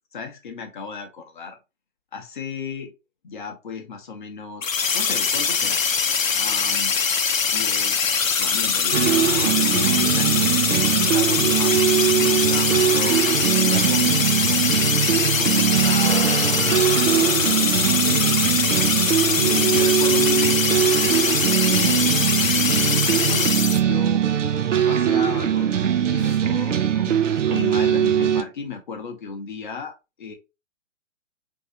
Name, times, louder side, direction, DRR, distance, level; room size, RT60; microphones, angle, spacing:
voice 1, 0.1-1.6 2.1-2.9 3.2-5.8 6.3-6.9 7.5-10.5 11.0-13.2 13.6-15.0 15.3-18.4 19.3-20.6 21.6-24.3 24.9-30.3, left 4 dB, 40° left, 0.7 m, -34 dB
sound 1, 4.6-23.8, left 6 dB, 85° left, 0.6 m, -22 dB
sound 2, 8.9-28.4, right 9 dB, 70° right, 0.5 m, -21 dB
sound 3, 15.9-27.0, right 2 dB, 15° right, 0.5 m, -41 dB
3.1 x 2.7 x 2.7 m
figure-of-eight pair, 130°, 39 cm